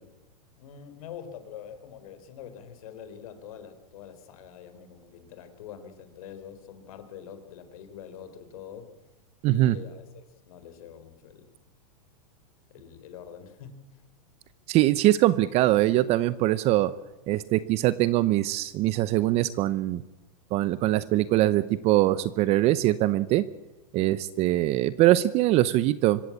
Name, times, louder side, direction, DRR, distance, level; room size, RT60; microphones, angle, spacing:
voice 1, 0.6-8.9 9.5-11.5 12.7-14.0, left 8 dB, 60° left, 10 dB, 4.0 m, -45 dB
voice 2, 9.4-9.7 14.7-16.9 17.3-20.0 20.5-23.4 23.9-26.2, right 15 dB, 30° right, 17 dB, 0.7 m, -22 dB
25.5 x 15.0 x 8.6 m, 1.0 s
hypercardioid pair, 140°, 20 cm